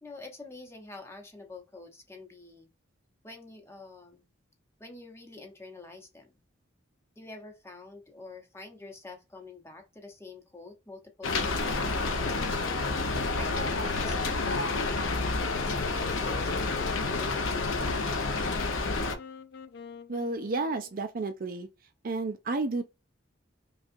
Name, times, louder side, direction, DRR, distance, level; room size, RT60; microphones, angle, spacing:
voice 1, 0.0-2.7 3.2-4.3 4.8-6.3 7.2-12.3 13.3-18.1, left 3 dB, 15° left, 0.9 m, -47 dB
Rain, 11.2-19.1, left 3 dB, 80° left, 0.8 m, -29 dB
Wind instrument woodwind instrument, 12.3-21.0, left 6 dB, 55° left, 0.4 m, -44 dB
voice 2, 20.1-21.7 22.0-22.8, right 3 dB, 45° right, 0.5 m, -31 dB
5.3 x 2.4 x 2.6 m
head